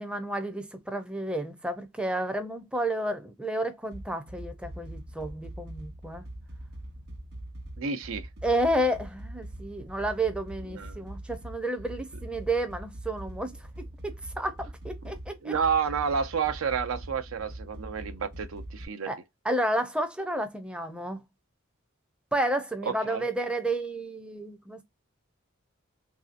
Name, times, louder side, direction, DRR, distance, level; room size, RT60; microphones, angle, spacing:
voice 1, 0.0-6.3 8.4-13.6 14.0-15.5 19.0-19.2 19.4-21.2 22.3-24.8, right 1 dB, 5° right, 0.5 m, -31 dB
sound 1, 3.9-18.9, right 1 dB, 55° right, 1.0 m, -42 dB
voice 2, 7.8-8.3 10.8-11.0 15.4-19.1 22.9-23.2, right 6 dB, 80° right, 0.5 m, -30 dB
3.1 x 2.7 x 2.4 m
head